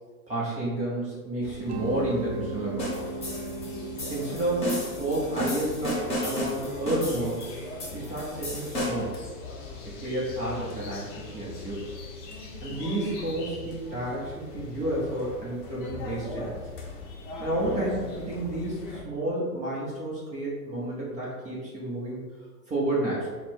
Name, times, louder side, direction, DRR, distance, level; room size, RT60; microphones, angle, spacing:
voice 1, 0.3-3.1 4.0-7.4 7.9-9.2 9.8-11.8 12.6-16.6 17.4-22.2 22.7-23.4, right 1 dB, 15° right, -5 dB, 0.7 m, -31 dB
sound 1, 1.4-19.0, left 3 dB, 30° left, 0.8 m, -41 dB
Mallet percussion, 1.7-10.4, right 4 dB, 50° right, 0.5 m, -41 dB
sound 2, 2.8-9.2, left 1 dB, 15° left, 1.1 m, -33 dB
4.0 x 2.2 x 4.3 m, 1.4 s
hypercardioid pair, 120°, 45 cm